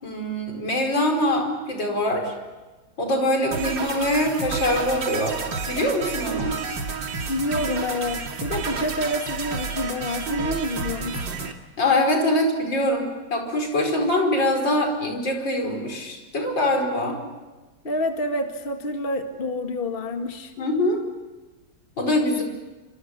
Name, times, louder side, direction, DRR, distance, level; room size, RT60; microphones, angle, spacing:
voice 1, 0.0-2.3 3.0-5.4 5.7-6.6 11.8-17.2 20.6-21.0 22.0-22.4, left 1 dB, 80° left, 3 dB, 5.7 m, -23 dB
sound 1, 3.5-11.5, right 5 dB, 80° right, 2.9 m, -30 dB
voice 2, 7.3-11.2 17.8-20.5, left 1 dB, 30° left, 5 dB, 2.0 m, -28 dB
27.5 x 26.0 x 8.1 m, 1.2 s
omnidirectional pair, 2.0 m